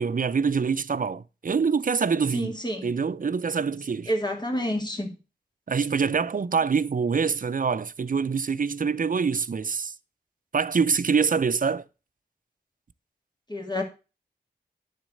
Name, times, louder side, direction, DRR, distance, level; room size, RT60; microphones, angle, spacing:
voice 1, 0.0-2.5 2.8-4.1 5.7-9.9 10.5-11.8, right 5 dB, 50° right, 0.5 m, -25 dB
voice 2, 2.3-2.9 4.1-5.2 13.5-13.8, equal, 25° left, 2.6 m, -29 dB
9.5 x 4.1 x 6.4 m
cardioid pair, 45°, 17 cm